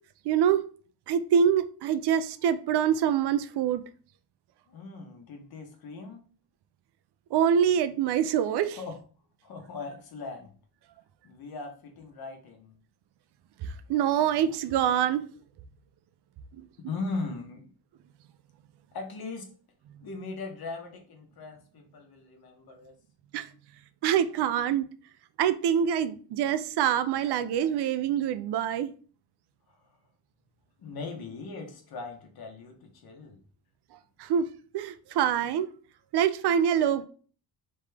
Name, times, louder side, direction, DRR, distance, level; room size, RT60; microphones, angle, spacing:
voice 1, 0.3-0.6 1.1-3.8 7.3-8.8 13.6-15.2 16.6-16.7 23.3-23.5 24.0-24.9 25.4-28.9 34.2-34.5 34.7-35.7 36.1-37.0, right 8 dB, 80° right, 0.5 m, -25 dB
voice 2, 4.7-6.3 8.8-9.0 9.4-10.5 11.2-12.7 16.9-17.7 18.9-19.5 20.0-22.9 29.7-29.8 30.8-33.4, left 3 dB, 65° left, 1.1 m, -39 dB
3.6 x 3.5 x 3.3 m
cardioid pair, 145°, 39 cm